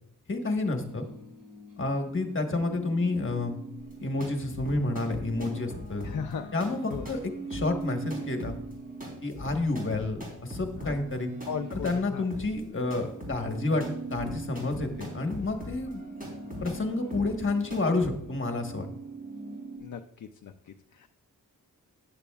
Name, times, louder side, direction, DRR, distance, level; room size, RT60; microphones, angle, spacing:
voice 1, 0.3-1.1 1.8-3.6 4.0-6.1 6.5-8.6 9.2-11.3 11.7-13.8 14.1-16.0 16.6-18.9, left 2 dB, 35° left, 4 dB, 1.3 m, -29 dB
sound 1, 0.8-9.6 10.0-19.8, right 4 dB, 55° right, 3.5 m, -43 dB
sound 2, 3.8-12.0 12.3-18.1, left 1 dB, 25° right, 3.7 m, -42 dB
voice 2, 6.0-6.5 6.9-7.1 10.8-11.0 11.5-12.2 19.8-21.1, left 6 dB, 55° left, 7 dB, 0.5 m, -37 dB
14.0 x 9.6 x 2.4 m, 0.80 s
wide cardioid pair, 175°, 36 cm